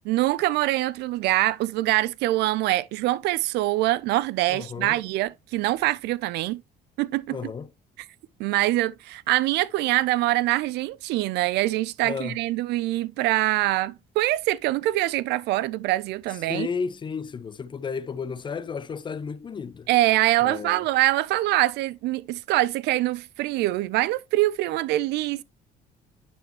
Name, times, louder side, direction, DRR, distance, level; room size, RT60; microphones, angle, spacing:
voice 1, 0.1-6.6 7.0-7.5 8.4-16.7 19.9-25.4, right 17 dB, 80° right, 0.5 m, -24 dB
voice 2, 4.5-5.0 7.3-7.7 12.0-12.4 16.5-19.9 20.4-20.8, left 5 dB, 30° left, 0.5 m, -33 dB
10.0 x 4.3 x 2.9 m
cardioid pair, 110°, 17 cm